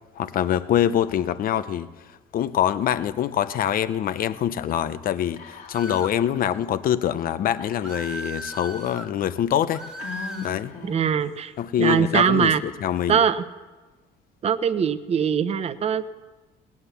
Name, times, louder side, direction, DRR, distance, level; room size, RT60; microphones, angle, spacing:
voice 1, 0.2-1.9 2.3-5.4 5.7-9.8 10.4-10.7 11.6-13.2, left 10 dB, 60° left, 0.8 m, -24 dB
Whispering, 5.4-6.1 6.4-6.5 7.6-8.5 9.1-9.2 10.0-11.2, left 6 dB, 80° left, 2.6 m, -39 dB
sound 1, 5.7-6.2 7.8-9.1 9.7-10.6, equal, 5° right, 1.8 m, -36 dB
voice 2, 10.8-11.5 11.8-12.6 13.1-13.4 14.4-16.1, right 7 dB, 40° right, 0.7 m, -22 dB
18.0 x 9.6 x 6.9 m
cardioid pair, 110°, 17 cm